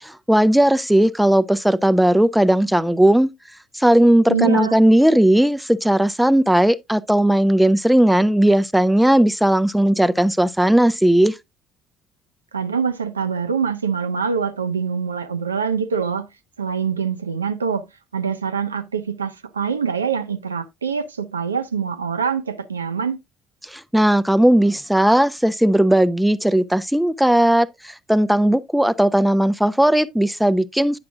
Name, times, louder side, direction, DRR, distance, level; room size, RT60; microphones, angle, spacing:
voice 1, 0.0-3.3 3.7-11.3 23.7-31.0, right 1 dB, 5° right, 0.4 m, -17 dB
voice 2, 4.3-4.8 12.5-16.3 16.6-17.9 18.1-23.2, right 6 dB, 80° right, 0.4 m, -24 dB
9.5 x 5.9 x 2.4 m
figure-of-eight pair, 55°, 0 cm